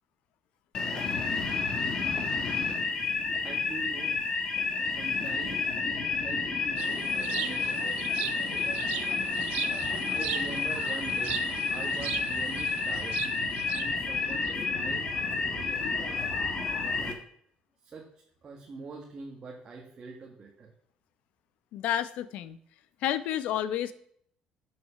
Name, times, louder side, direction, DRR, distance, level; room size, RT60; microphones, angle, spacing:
sound 1, 0.7-17.1, left 4 dB, 30° left, 1.8 m, -30 dB
voice 1, 3.4-4.2 5.0-5.6 6.1-8.1 10.1-11.4 11.7-13.3 13.6-16.3 17.0-17.2 17.8-18.1 18.4-20.7, right 4 dB, 25° right, 0 dB, 1.8 m, -44 dB
sound 2, 6.8-14.5, right 15 dB, 80° right, 0.7 m, -39 dB
voice 2, 21.7-22.6 23.0-23.9, left 11 dB, 65° left, 14 dB, 1.0 m, -30 dB
12.5 x 7.0 x 7.3 m, 0.65 s
cardioid pair, 170°, 2 cm